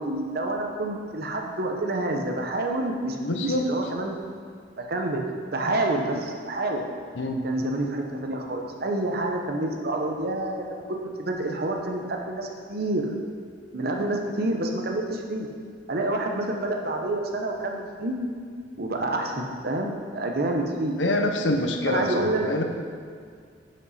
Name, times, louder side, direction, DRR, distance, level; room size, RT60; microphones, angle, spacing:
voice 1, 0.0-4.2 4.9-5.3 5.5-6.8 7.4-10.6 11.2-13.0 13.7-15.5 15.9-18.1 18.8-21.0 21.9-22.6, right 2 dB, 55° right, 2 dB, 0.9 m, -28 dB
voice 2, 3.2-3.7 7.1-7.4 21.0-22.6, left 1 dB, 70° left, 5 dB, 0.8 m, -26 dB
11.0 x 5.3 x 4.2 m, 2.1 s
head